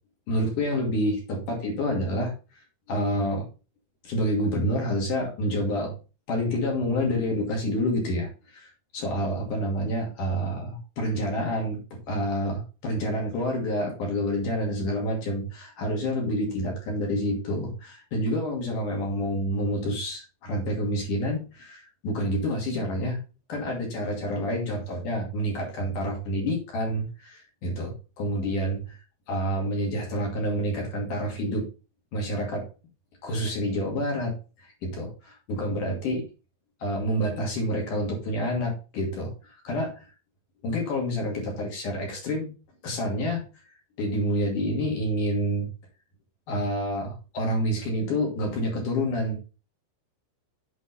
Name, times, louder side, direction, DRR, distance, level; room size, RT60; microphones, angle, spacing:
voice 1, 0.3-2.3 2.9-3.5 4.0-5.9 6.3-11.8 12.1-23.2 23.5-29.0 29.3-31.7 32.1-32.7 33.2-34.3 34.8-36.2 36.8-39.3 39.6-40.0 40.6-42.5 42.8-43.4 44.0-45.7 46.5-49.4, equal, 50° left, -1 dB, 3.4 m, -28 dB
8.2 x 5.0 x 4.2 m, 0.31 s
omnidirectional pair, 5.6 m